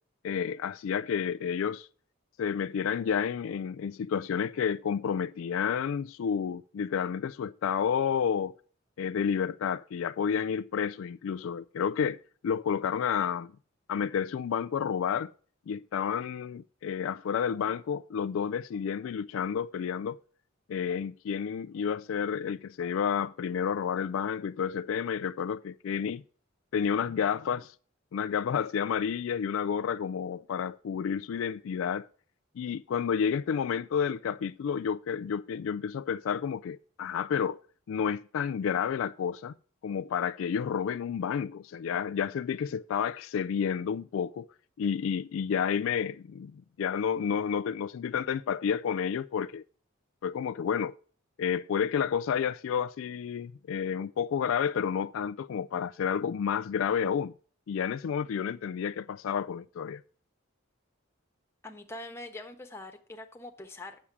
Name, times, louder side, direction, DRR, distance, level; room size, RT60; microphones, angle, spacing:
voice 1, 0.2-1.9 2.4-8.5 9.0-12.2 12.4-13.5 13.9-15.3 15.7-20.2 20.7-26.2 26.7-27.7 28.1-32.1 32.6-37.6 37.9-39.5 39.8-44.5 44.8-49.6 50.2-51.0 51.4-57.3 57.7-60.0, left 7 dB, 75° left, 0.3 m, -30 dB
voice 2, 61.6-64.0, left 2 dB, 10° left, 1.1 m, -43 dB
8.6 x 7.1 x 4.7 m
head